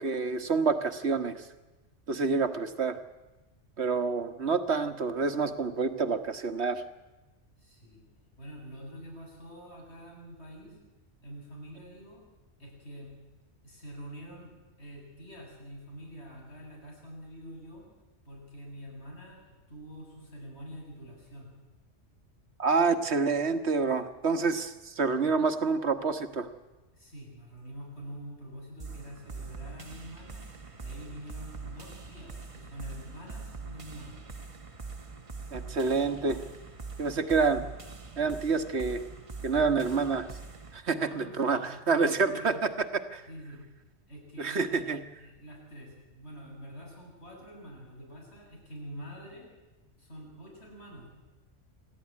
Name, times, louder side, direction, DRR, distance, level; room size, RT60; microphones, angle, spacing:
voice 1, 0.0-1.4 2.1-3.0 3.8-6.8 22.6-26.5 35.5-36.4 37.0-37.6 38.2-39.0 39.4-40.3 40.7-43.2 44.4-45.0, right 4 dB, 60° right, 9 dB, 1.7 m, -28 dB
voice 2, 7.6-8.0 8.4-10.8 11.2-12.2 12.6-13.1 13.6-17.9 18.2-21.5 26.9-30.4 30.8-34.3 40.9-42.6 43.3-43.6 44.1-44.7 45.2-49.5 50.0-51.1, equal, 60° left, -1 dB, 8.1 m, -46 dB
sound 1, 28.8-40.8, right 4 dB, 30° right, 1.3 m, -43 dB
27.5 x 13.5 x 9.8 m, 1.1 s
omnidirectional pair, 1.2 m